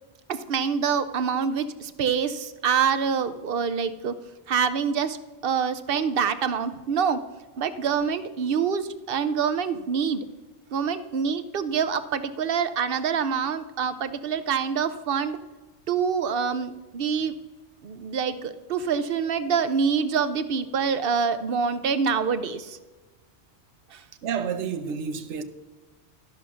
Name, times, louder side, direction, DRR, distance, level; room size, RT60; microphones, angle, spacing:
voice 1, 0.3-4.2 4.5-5.2 5.4-7.2 7.6-10.3 10.7-15.4 15.9-17.3 17.8-22.8 23.9-24.0, right 6 dB, 60° right, 0.8 m, -26 dB
voice 2, 24.2-25.4, right 6 dB, 90° right, 1.0 m, -30 dB
13.0 x 5.6 x 6.2 m
omnidirectional pair, 1.2 m